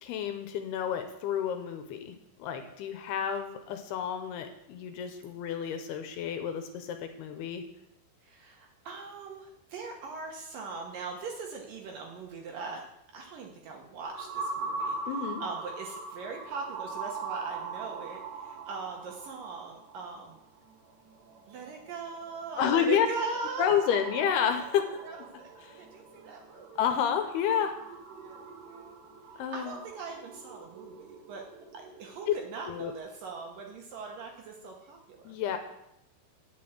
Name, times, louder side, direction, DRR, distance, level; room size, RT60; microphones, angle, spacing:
voice 1, 0.0-7.6 15.1-15.4 22.6-23.1 23.6-25.0 25.6-25.8 26.8-27.7 29.4-29.8 32.3-32.4 32.7-32.9 35.2-35.6, left 8 dB, 75° left, 7 dB, 2.6 m, -30 dB
voice 2, 8.2-12.8 13.1-15.1 15.4-20.4 21.5-23.7 25.0-26.8 27.9-29.0 29.5-31.4 31.7-35.4, right 4 dB, 65° right, 1 dB, 2.4 m, -41 dB
sound 1, 14.0-33.0, right 4 dB, 85° right, 3.9 m, -42 dB
9.1 x 6.1 x 7.7 m, 0.82 s
omnidirectional pair, 4.9 m